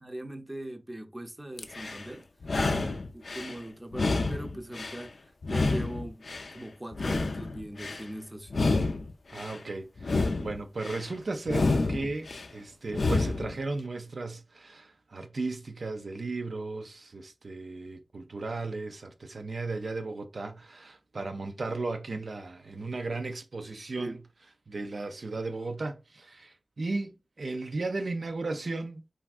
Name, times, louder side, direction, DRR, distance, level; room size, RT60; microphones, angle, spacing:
voice 1, 0.0-2.2 3.1-5.1 5.5-6.2 6.5-8.7 24.0-24.2, right 1 dB, 20° right, 0.5 m, -40 dB
sound 1, 1.6-2.1 2.4-3.5 3.9-5.1 5.4-6.5 6.9-8.0 8.5-9.6 10.0-11.0 11.5-12.5 12.9-13.5, left 3 dB, 85° left, 0.3 m, -29 dB
voice 2, 2.6-3.0 9.3-24.2 24.7-29.0, right 3 dB, 75° right, 0.3 m, -35 dB
3.3 x 2.4 x 2.3 m
wide cardioid pair, 80°, 0 cm